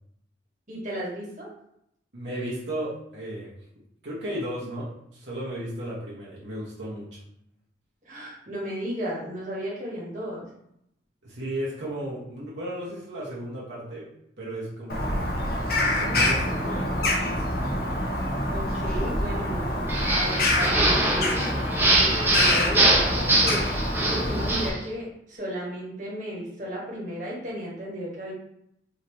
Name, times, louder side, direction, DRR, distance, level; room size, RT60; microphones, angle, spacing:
voice 1, 0.7-1.5 8.0-10.5 18.5-19.8 20.1-28.3, equal, 45° right, -4 dB, 1.4 m, -34 dB
voice 2, 2.1-3.5 4.0-7.2 11.2-14.1 14.4-15.2 16.0-17.6, right 1 dB, 75° right, -6 dB, 1.1 m, -34 dB
Bird vocalization bird call bird song, 14.9-24.7, left 1 dB, 55° left, 0.8 m, -26 dB
sound 1, 19.9-24.8, right 2 dB, 10° right, 0.7 m, -23 dB
5.1 x 2.7 x 3.1 m, 0.76 s
head